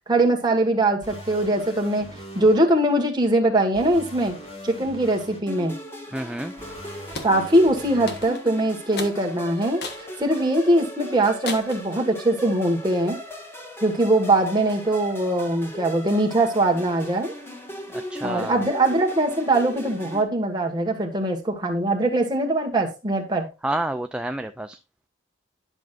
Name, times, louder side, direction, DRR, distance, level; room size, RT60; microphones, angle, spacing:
voice 1, 0.1-2.1 2.3-4.4 4.6-5.7 7.2-9.8 10.2-13.2 13.8-17.3 18.2-23.5, right 1 dB, 25° right, 1.6 m, -21 dB
sound 1, 1.0-2.5 3.7-5.4 6.6-8.2, equal, 35° left, 4.2 m, -41 dB
sound 2, 5.5-20.2, equal, 15° left, 1.6 m, -38 dB
voice 2, 6.1-6.5 17.9-18.6 23.6-24.8, right 1 dB, 5° right, 0.3 m, -29 dB
sound 3, 7.2-7.4 8.1-8.5 9.0-9.2 9.8-10.1 10.6-10.7 11.5-11.8, left 3 dB, 60° left, 1.3 m, -34 dB
10.5 x 6.2 x 2.5 m
head